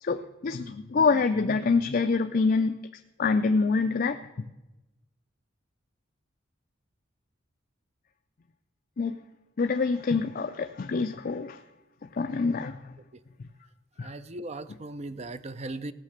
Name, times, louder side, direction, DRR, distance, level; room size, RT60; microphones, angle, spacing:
voice 1, 0.0-2.8 3.2-4.5 9.0-9.2 9.6-11.6 12.2-12.9 14.0-14.1, left 4 dB, 45° left, 0.4 m, -26 dB
voice 2, 14.0-15.9, right 2 dB, 35° right, 0.5 m, -38 dB
16.5 x 6.6 x 6.5 m
head